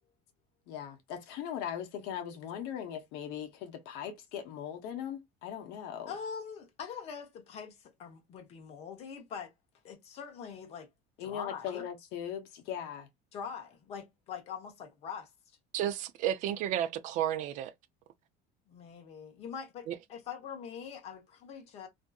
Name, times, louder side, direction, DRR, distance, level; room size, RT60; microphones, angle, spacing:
voice 1, 0.7-6.1 11.2-13.1, left 9 dB, 65° left, 0.7 m, -39 dB
voice 2, 6.1-9.5 9.8-10.9 11.2-11.8 13.3-15.3 18.7-19.8 20.1-21.9, left 7 dB, 35° left, 0.7 m, -43 dB
voice 3, 15.7-17.7 19.9-20.0, right 11 dB, 45° right, 0.4 m, -32 dB
2.6 x 2.5 x 2.2 m
cardioid pair, 180°, 19 cm